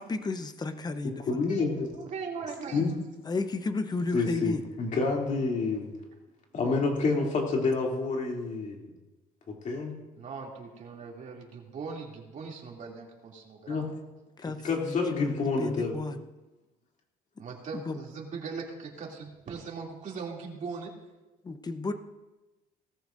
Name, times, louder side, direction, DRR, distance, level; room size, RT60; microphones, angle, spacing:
voice 1, 0.0-1.2 3.3-4.6 14.4-16.2 17.4-17.5 17.7-18.0 21.4-21.9, left 3 dB, 25° left, 9 dB, 0.9 m, -33 dB
voice 2, 1.3-1.9 2.7-2.9 4.1-5.9 6.5-8.9 9.5-10.0 13.7-13.9 14.6-15.9, left 3 dB, 45° left, -1 dB, 2.9 m, -28 dB
voice 3, 1.9-3.0 10.2-13.9 17.4-20.9, right 5 dB, 45° right, -1 dB, 2.8 m, -40 dB
17.5 x 14.0 x 2.6 m, 1.1 s
cardioid pair, 110°, 17 cm